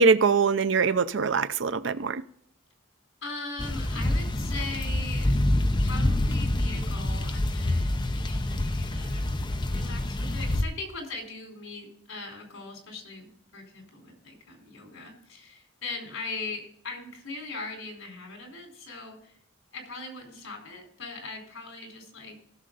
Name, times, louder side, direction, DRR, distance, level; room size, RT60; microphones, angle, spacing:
voice 1, 0.0-2.2, right 4 dB, 65° right, 0.5 m, -22 dB
voice 2, 3.2-5.4 5.8-19.3 19.7-22.4, left 3 dB, 80° left, 4.2 m, -40 dB
sound 1, 3.6-10.6, left 1 dB, 20° left, 0.6 m, -27 dB
16.0 x 6.7 x 3.9 m
head